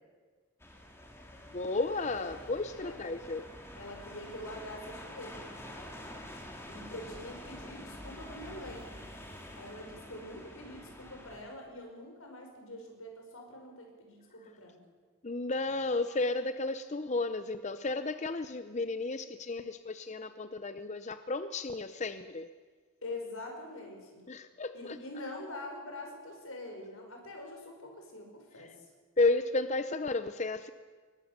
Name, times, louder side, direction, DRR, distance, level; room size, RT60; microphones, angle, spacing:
sound 1, 0.6-11.4, left 1 dB, 10° left, 2.5 m, -47 dB
voice 1, 1.5-3.5 15.2-22.5 24.3-25.0 28.6-28.7 29.2-30.7, left 3 dB, 35° left, 11 dB, 0.7 m, -33 dB
voice 2, 2.8-3.1 3.8-5.5 6.7-8.9 9.5-14.8 23.0-24.2 24.7-28.9, left 1 dB, 90° left, 2 dB, 5.6 m, -45 dB
22.0 x 20.0 x 6.7 m, 1.5 s
head